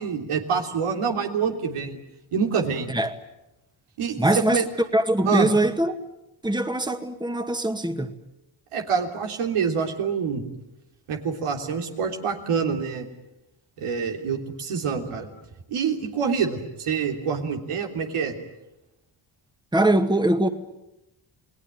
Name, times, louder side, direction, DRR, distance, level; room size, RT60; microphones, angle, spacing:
voice 1, 0.0-2.0 2.3-2.9 4.0-4.6 5.2-5.5 8.7-10.4 11.1-13.1 13.8-15.3 15.7-18.4, right 6 dB, 85° right, 3.4 m, -26 dB
voice 2, 4.2-4.6 4.9-6.0 6.4-8.1 19.7-20.5, right 1 dB, 10° right, 2.0 m, -22 dB
29.0 x 19.0 x 9.1 m
cardioid pair, 60°, 50 cm